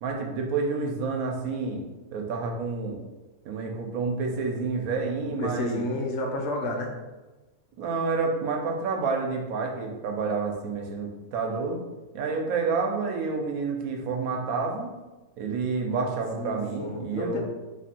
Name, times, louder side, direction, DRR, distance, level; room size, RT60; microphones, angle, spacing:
voice 1, 0.0-1.8 2.1-3.0 3.4-5.9 7.8-11.8 12.1-14.9 15.4-17.4, right 4 dB, 85° right, 2 dB, 1.1 m, -29 dB
voice 2, 5.2-6.9 16.4-17.4, left 1 dB, 70° left, 2 dB, 0.9 m, -31 dB
2.9 x 2.5 x 4.1 m, 1.1 s
omnidirectional pair, 1.5 m